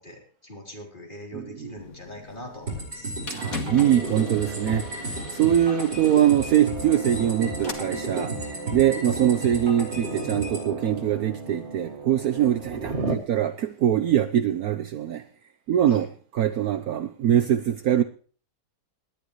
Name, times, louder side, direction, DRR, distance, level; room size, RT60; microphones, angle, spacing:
voice 1, 0.0-3.1 15.9-16.1, left 1 dB, 30° left, 3.9 m, -42 dB
voice 2, 1.3-1.7 3.3-15.2 15.7-16.1 16.3-18.0, right 10 dB, 65° right, 1.2 m, -23 dB
sound 1, 1.8-7.7, left 5 dB, 55° left, 2.5 m, -41 dB
sound 2, 2.7-10.7, right 2 dB, 90° right, 6.0 m, -34 dB
sound 3, 3.7-13.2, right 2 dB, 40° right, 2.0 m, -35 dB
19.5 x 12.0 x 3.2 m
omnidirectional pair, 1.8 m